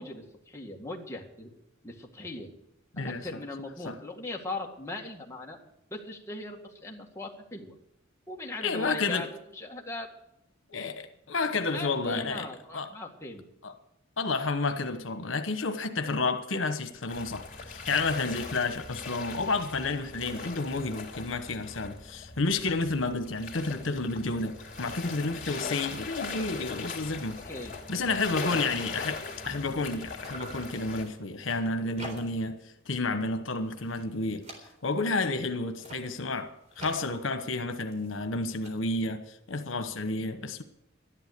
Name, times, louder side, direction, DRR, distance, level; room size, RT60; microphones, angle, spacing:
voice 1, 0.0-1.5 1.8-2.5 3.0-5.6 5.9-7.7 8.3-9.3 9.5-10.1 11.7-13.4 27.5-28.1, left 2 dB, 15° left, 2.0 m, -39 dB
voice 2, 2.9-3.3 3.8-4.0 8.6-9.3 10.7-12.5 12.7-12.9 13.6-13.7 14.2-27.4 27.9-34.5 34.8-40.6, left 3 dB, 85° left, 1.1 m, -31 dB
sound 1, 17.1-31.1, left 4 dB, 40° left, 3.2 m, -40 dB
sound 2, 27.2-27.3 27.7-27.8 28.0-29.9 30.2-32.6 32.9-33.3 33.6-35.1 35.6-38.7, right 1 dB, 40° right, 3.8 m, -48 dB
13.0 x 11.5 x 6.8 m
head